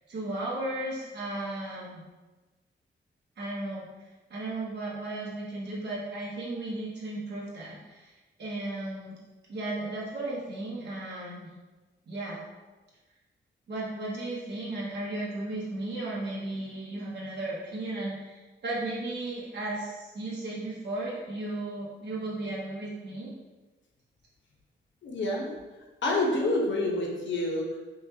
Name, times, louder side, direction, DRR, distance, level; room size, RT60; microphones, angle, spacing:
voice 1, 0.1-2.0 3.4-3.9 4.3-8.1 8.4-9.2 9.5-11.5 12.1-12.4 13.7-23.3, right 2 dB, 60° right, -6 dB, 0.9 m, -35 dB
voice 2, 25.0-25.5 26.0-27.8, left 2 dB, 75° left, -2 dB, 0.9 m, -28 dB
5.5 x 2.4 x 2.7 m, 1.2 s
wide cardioid pair, 150°, 19 cm